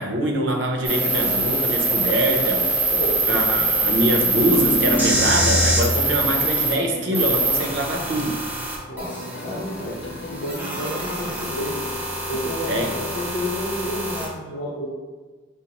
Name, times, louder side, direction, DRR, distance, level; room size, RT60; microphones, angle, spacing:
voice 1, 0.0-2.9 3.3-8.4 12.7-12.9, right 1 dB, 90° right, 1 dB, 0.6 m, -24 dB
sound 1, 0.8-6.7 7.1-14.3, right 2 dB, 10° right, 0.6 m, -24 dB
voice 2, 2.9-3.7 8.9-11.8 12.3-14.9, left 1 dB, 60° left, -7 dB, 0.8 m, -31 dB
sound 2, 4.3-6.1, equal, 25° left, 1.0 m, -25 dB
sound 3, 5.0-13.5, left 2 dB, 75° left, 0.4 m, -37 dB
5.1 x 2.1 x 2.9 m, 1.3 s
head